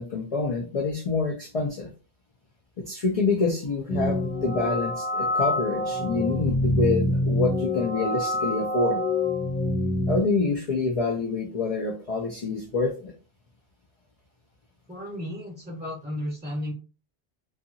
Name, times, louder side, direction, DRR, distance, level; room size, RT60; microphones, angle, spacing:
voice 1, 0.0-1.9 2.9-9.0 10.1-13.1, left 3 dB, 50° left, 0 dB, 0.5 m, -27 dB
sound 1, 3.9-10.2, left 1 dB, 80° left, 0.9 m, -26 dB
voice 2, 14.9-16.7, left 1 dB, 10° right, -4 dB, 0.7 m, -33 dB
2.7 x 2.3 x 2.6 m, 0.34 s
omnidirectional pair, 1.0 m